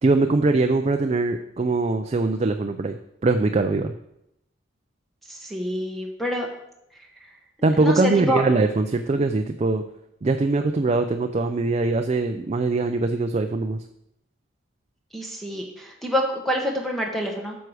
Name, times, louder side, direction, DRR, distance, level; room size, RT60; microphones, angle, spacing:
voice 1, 0.0-3.9 7.6-9.8 10.2-13.8, right 3 dB, 35° right, 6 dB, 0.4 m, -22 dB
voice 2, 5.3-6.5 7.7-8.4 15.1-17.6, equal, ahead, 0 dB, 1.1 m, -27 dB
9.3 x 6.3 x 4.8 m, 0.81 s
head